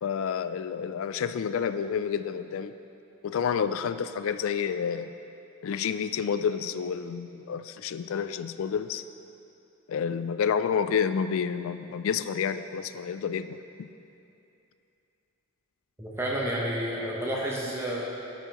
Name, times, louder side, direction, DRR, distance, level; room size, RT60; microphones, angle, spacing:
voice 1, 0.0-2.7 3.2-5.1 5.6-9.0 9.9-13.9, left 7 dB, 75° left, 11 dB, 0.3 m, -29 dB
voice 2, 16.0-18.3, right 1 dB, 10° right, -4 dB, 0.9 m, -30 dB
13.5 x 5.6 x 3.0 m, 2.7 s
head